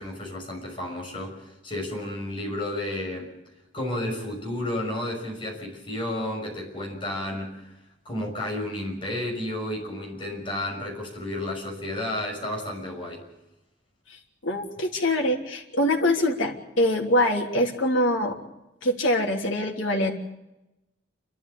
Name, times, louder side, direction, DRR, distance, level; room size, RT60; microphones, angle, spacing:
voice 1, 0.0-3.3 3.7-7.7 8.0-13.2, left 1 dB, 25° left, 1 dB, 6.2 m, -32 dB
voice 2, 14.1-18.4 18.8-20.1, left 1 dB, 85° left, 2 dB, 3.2 m, -24 dB
28.5 x 13.0 x 8.5 m, 0.95 s
head